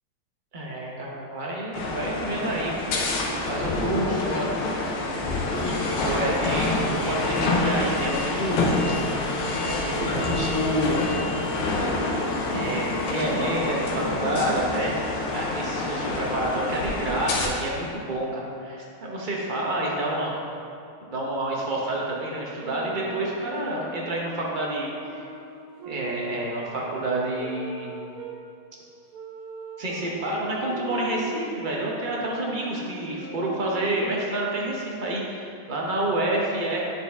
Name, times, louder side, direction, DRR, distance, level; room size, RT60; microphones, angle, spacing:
voice 1, 0.5-2.9 3.5-5.3 5.6-5.7 6.0-9.0 9.6-11.0 12.5-15.0 15.3-20.3 21.1-25.2 25.9-27.9 29.8-36.8, right 1 dB, 70° right, -3 dB, 0.4 m, -29 dB
sound 1, 1.7-17.5, left 2 dB, 90° left, 1.7 m, -27 dB
Breathing, 6.0-14.5, equal, 40° left, 0.7 m, -42 dB
sound 2, 22.6-28.4 29.1-34.7, right 3 dB, 90° right, 1.7 m, -40 dB
9.9 x 4.4 x 3.5 m, 2.5 s
omnidirectional pair, 2.3 m